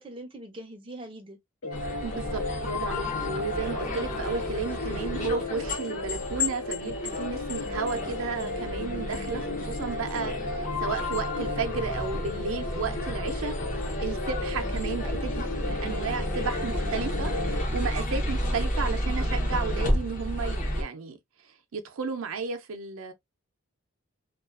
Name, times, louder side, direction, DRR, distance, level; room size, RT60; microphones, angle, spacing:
voice 1, 0.0-1.4 3.8-4.3 18.3-18.6, right 1 dB, 25° right, 0.5 m, -43 dB
sound 1, 1.6-17.6, left 3 dB, 85° left, 0.7 m, -35 dB
sound 2, 1.7-20.8, left 1 dB, 35° left, 0.5 m, -32 dB
voice 2, 2.0-13.6 14.0-21.2 21.7-23.1, right 5 dB, 75° right, 0.5 m, -33 dB
2.3 x 2.3 x 2.3 m
head